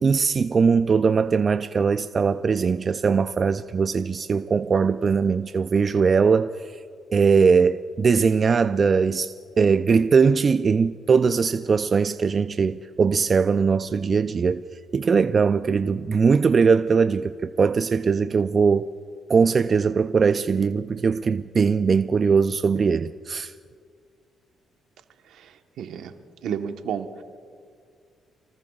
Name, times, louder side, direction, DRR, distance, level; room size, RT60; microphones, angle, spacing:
voice 1, 0.0-6.7 7.1-14.6 14.9-18.9 19.3-23.5, right 5 dB, 45° right, 0.4 m, -20 dB
voice 2, 25.8-26.1 26.4-27.2, right 8 dB, 75° right, 1.2 m, -30 dB
28.5 x 19.5 x 2.4 m
supercardioid pair, 70°, 0 cm